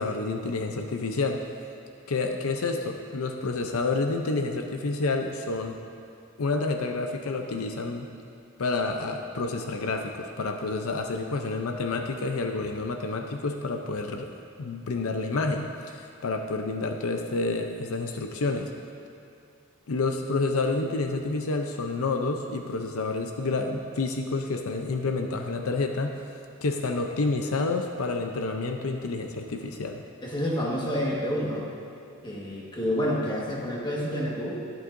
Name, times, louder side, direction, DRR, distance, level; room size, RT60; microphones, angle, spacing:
voice 1, 0.0-1.5 2.1-5.8 6.4-8.1 8.6-14.3 14.6-18.7 19.9-26.3 26.6-30.0, left 3 dB, 85° left, 4 dB, 0.6 m, -29 dB
voice 2, 30.2-31.6 32.2-34.6, equal, 20° left, -4 dB, 1.5 m, -28 dB
11.5 x 10.5 x 2.6 m, 2.5 s
head